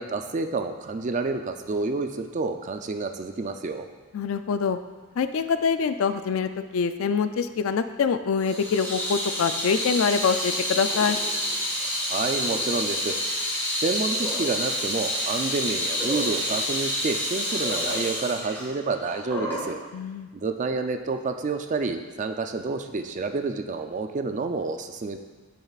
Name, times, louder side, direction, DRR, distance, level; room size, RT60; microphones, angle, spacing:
voice 1, 0.0-3.9 12.1-13.1 13.8-19.8 20.3-25.2, right 3 dB, 35° right, 7 dB, 0.4 m, -29 dB
voice 2, 4.1-4.8 5.2-11.2 19.9-20.3, left 6 dB, 75° left, 10 dB, 0.4 m, -25 dB
Water tap faucet / Sink (filling or washing), 8.4-19.7, left 1 dB, 10° left, 2.1 m, -28 dB
8.4 x 6.6 x 2.4 m, 1.3 s
head